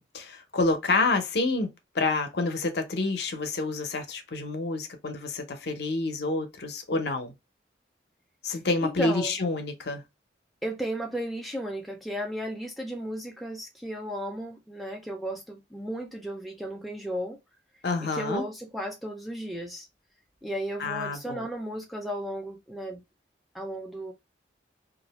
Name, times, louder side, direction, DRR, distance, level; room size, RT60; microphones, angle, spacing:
voice 1, 0.0-7.3 8.4-10.0 17.8-18.4 20.8-21.5, left 3 dB, 65° left, 0.6 m, -28 dB
voice 2, 8.5-9.3 10.6-17.4 18.0-19.9 20.4-23.0 23.5-24.1, equal, ahead, 0.3 m, -34 dB
2.4 x 2.0 x 2.9 m
head